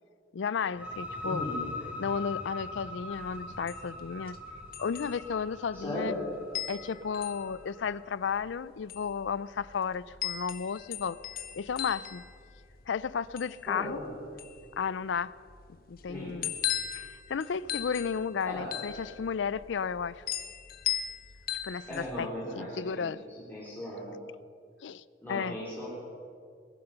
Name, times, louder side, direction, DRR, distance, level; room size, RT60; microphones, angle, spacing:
voice 1, 0.3-1.5 2.0-4.4 4.8-6.1 6.7-11.2 11.5-12.2 12.9-14.0 14.8-15.3 15.9-16.6 16.9-20.2 21.6-22.3 22.6-23.2 24.8-25.0 25.3-25.6, left 6 dB, 75° left, 18 dB, 0.4 m, -33 dB
sound 1, 0.6-8.1, left 2 dB, 5° right, 1.5 m, -41 dB
voice 2, 1.2-1.6 5.7-6.2 13.7-14.1 16.1-16.4 18.4-18.7 21.9-23.1 23.5-24.1 25.2-25.9, left 1 dB, 10° left, -10 dB, 3.6 m, -37 dB
sound 2, 3.1-22.3, left 11 dB, 55° left, 0.9 m, -39 dB
21.0 x 10.5 x 5.8 m, 2.3 s
head